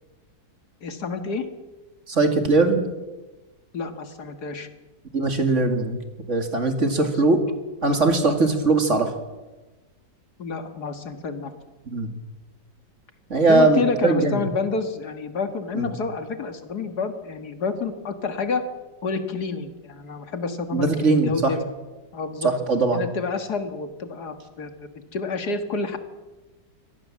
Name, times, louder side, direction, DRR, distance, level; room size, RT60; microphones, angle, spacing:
voice 1, 0.8-1.5 3.7-4.7 6.8-7.1 10.4-11.6 13.5-18.7 19.0-21.6 22.1-22.5 22.9-26.0, left 4 dB, 65° left, 9 dB, 2.2 m, -29 dB
voice 2, 2.1-2.8 5.1-6.0 6.3-7.4 7.8-9.1 11.9-12.1 13.3-14.4 15.7-15.9 20.7-21.5 22.4-23.0, right 3 dB, 40° right, 6 dB, 2.6 m, -20 dB
24.5 x 18.0 x 7.5 m, 1.1 s
omnidirectional pair, 1.9 m